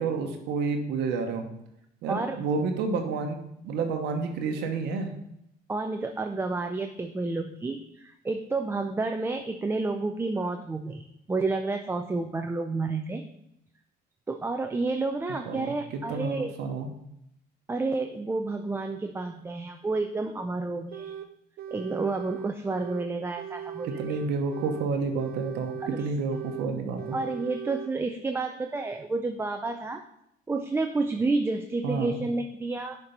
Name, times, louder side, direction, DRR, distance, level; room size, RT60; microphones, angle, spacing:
voice 1, 0.0-1.4 2.0-3.4 3.6-5.1 15.5-15.7 16.1-16.9 23.8-27.2 31.8-32.2, right 4 dB, 85° right, 4 dB, 1.0 m, -29 dB
voice 2, 2.1-2.4 5.7-13.2 14.3-16.5 17.7-21.2 21.7-24.2 25.8-26.1 27.1-30.0 30.5-33.0, right 3 dB, 15° right, 5 dB, 0.5 m, -30 dB
sound 1, 20.9-21.3 21.6-23.1 23.4-24.9 25.2-26.7 27.0-27.9, right 9 dB, 60° right, 0.5 m, -39 dB
7.0 x 4.5 x 5.2 m, 0.78 s
cardioid pair, 110°, 17 cm